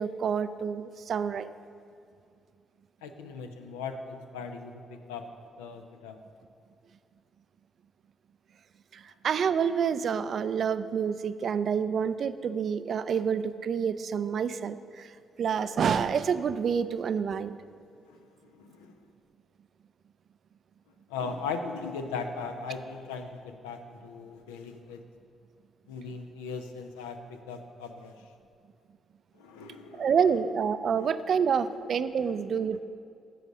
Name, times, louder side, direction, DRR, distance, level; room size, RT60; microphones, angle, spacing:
voice 1, 0.0-1.5 8.9-15.1 15.4-17.6 29.9-32.8, right 7 dB, 60° right, 13 dB, 0.3 m, -28 dB
voice 2, 3.0-5.2 5.6-6.2 18.1-19.0 21.1-25.0 25.9-28.2 29.4-30.3 31.3-31.4 31.7-31.8 32.2-32.4, left 5 dB, 85° left, 6 dB, 0.5 m, -39 dB
7.7 x 4.9 x 6.4 m, 2.4 s
hypercardioid pair, 45°, 0 cm